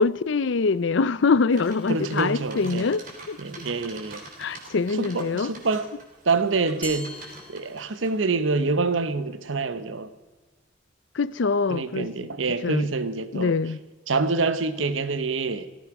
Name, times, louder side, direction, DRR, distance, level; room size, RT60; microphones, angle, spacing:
voice 1, 0.0-3.4 4.4-5.5 11.1-12.1 12.6-12.9 13.3-13.8, left 4 dB, 70° left, 0.5 m, -24 dB
sound 1, 1.5-8.1, right 2 dB, 45° right, 3.2 m, -45 dB
voice 2, 1.9-2.9 3.4-4.2 5.0-5.9 6.2-7.2 7.5-10.1 11.7-13.5 14.1-15.7, right 3 dB, 80° right, 0.9 m, -26 dB
Glass, 6.8-8.3, left 2 dB, 10° left, 2.8 m, -41 dB
17.0 x 14.5 x 4.8 m
head